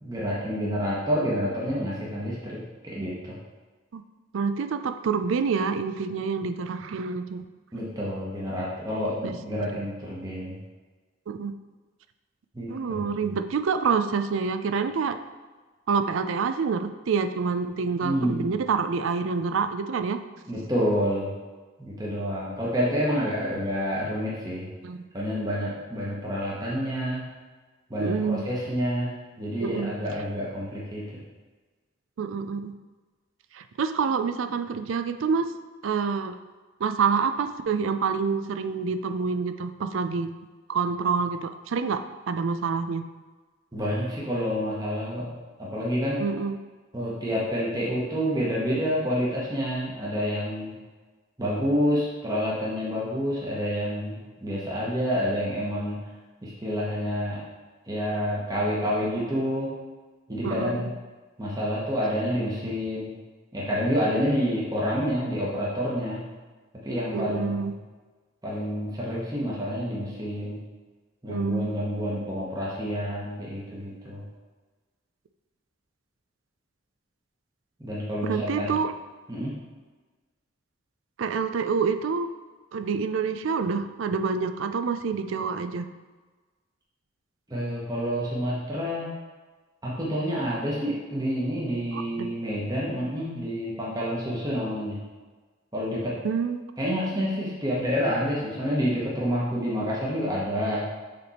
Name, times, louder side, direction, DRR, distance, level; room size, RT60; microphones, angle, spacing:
voice 1, 0.0-3.3 7.7-10.6 12.5-13.1 18.0-18.5 20.4-21.3 21.8-24.7 25.1-27.3 27.9-31.1 43.7-45.3 45.6-46.2 46.9-50.7 51.4-56.0 56.4-57.4 57.9-59.7 60.3-60.9 61.4-63.1 63.5-66.3 66.8-67.8 68.4-70.6 71.2-74.2 77.8-78.7 79.3-79.6 87.5-89.1 89.8-95.0 95.7-96.2 96.8-100.9, equal, 20° right, -6 dB, 1.1 m, -28 dB
voice 2, 4.3-7.4 9.2-9.4 11.3-11.5 12.7-15.2 15.9-20.2 24.8-25.0 28.0-28.5 29.6-29.9 32.2-32.7 33.5-35.5 35.8-36.4 36.8-40.3 40.7-42.0 42.3-43.0 46.2-46.6 60.4-60.9 67.1-67.7 71.3-71.8 78.2-78.9 81.2-82.3 82.7-85.8 91.9-92.3 96.2-96.6, right 5 dB, 85° right, 9 dB, 0.4 m, -27 dB
6.7 x 3.4 x 4.2 m, 1.3 s
head